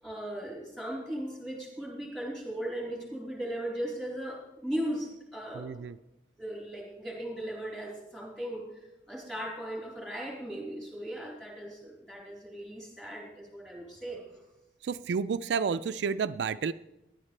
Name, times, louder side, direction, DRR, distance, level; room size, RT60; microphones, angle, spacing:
voice 1, 0.0-5.9 6.4-8.7 9.1-14.2, right 1 dB, 5° left, -3 dB, 3.7 m, -37 dB
voice 2, 5.5-6.0 14.8-16.7, right 6 dB, 75° right, 12 dB, 0.4 m, -30 dB
17.0 x 11.0 x 3.3 m, 0.92 s
head